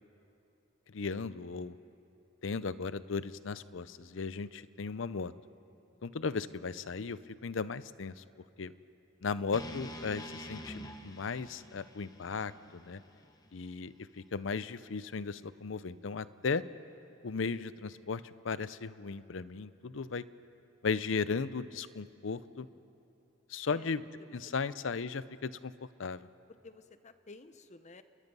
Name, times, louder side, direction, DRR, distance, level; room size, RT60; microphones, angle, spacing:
voice 1, 0.9-1.7 2.4-5.3 6.0-8.2 8.6-8.7 9.2-13.0 13.5-16.6 17.2-20.2 20.8-22.7 23.5-24.0 24.3-26.3, left 5 dB, 70° left, 16 dB, 0.6 m, -36 dB
sound 1, 9.5-13.7, equal, 20° left, 1.2 m, -46 dB
voice 2, 12.8-13.3 20.0-20.2 23.7-23.9 24.6-24.7 26.6-28.0, left 3 dB, 35° left, 11 dB, 0.8 m, -53 dB
29.0 x 21.5 x 5.5 m, 2.8 s
head